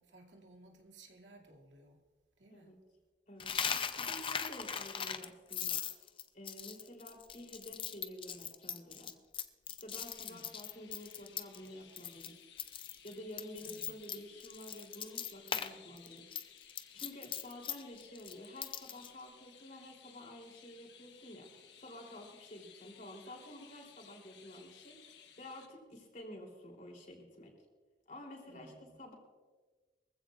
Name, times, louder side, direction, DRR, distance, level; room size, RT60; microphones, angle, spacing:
voice 1, 0.0-2.0 2.4-2.8 10.3-10.5 13.7-14.0 28.5-29.0, right 2 dB, 85° right, 0 dB, 2.4 m, -58 dB
voice 2, 3.3-5.9 6.3-9.1 9.7-12.4 13.0-16.2 16.9-27.5 28.1-29.1, left 1 dB, 45° left, 0 dB, 3.5 m, -50 dB
Coin (dropping), 3.4-11.7 12.0-12.3 12.6-15.7 16.0-19.1, left 7 dB, 30° left, 0.6 m, -39 dB
Chirp tweet, 9.9-25.7, left 8 dB, 75° left, 1.3 m, -59 dB
23.5 x 15.0 x 2.5 m, 1.4 s
head